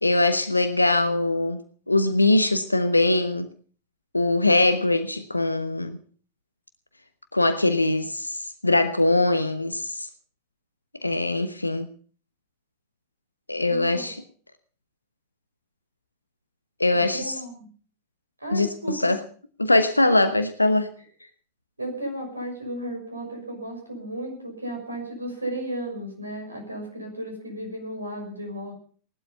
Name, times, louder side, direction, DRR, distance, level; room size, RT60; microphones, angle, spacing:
voice 1, 0.0-1.6 1.9-3.5 4.1-6.0 7.3-10.1 11.0-11.9 13.5-14.2 16.8-17.3 18.5-19.2 19.6-20.9, left 2 dB, 85° left, 9 dB, 1.1 m, -22 dB
voice 2, 13.7-14.1 16.9-17.7 18.4-19.1 20.0-20.1 21.8-28.7, right 1 dB, 80° right, 2 dB, 6.1 m, -34 dB
18.0 x 12.0 x 5.5 m, 0.43 s
figure-of-eight pair, 90°, 0 cm